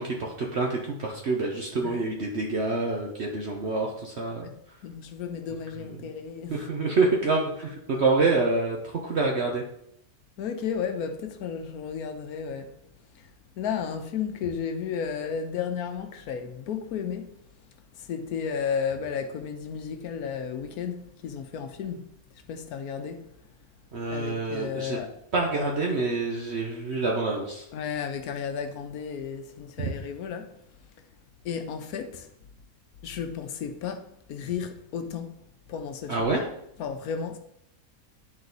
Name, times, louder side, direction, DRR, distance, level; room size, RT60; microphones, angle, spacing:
voice 1, 0.0-4.5 6.0-6.1 6.5-8.8 9.0-9.6 23.9-25.0 25.3-27.6 29.8-29.9 36.1-36.4, right 3 dB, 50° right, 1.1 m, -27 dB
voice 2, 4.8-6.7 10.4-12.7 13.1-13.3 13.6-17.3 17.9-22.0 22.3-23.2 24.1-25.1 25.5-25.7 27.7-30.5 31.4-32.3 33.0-35.4 35.7-36.3 36.8-37.4, left 7 dB, 85° left, 1.2 m, -33 dB
9.8 x 4.0 x 3.9 m
omnidirectional pair, 1.5 m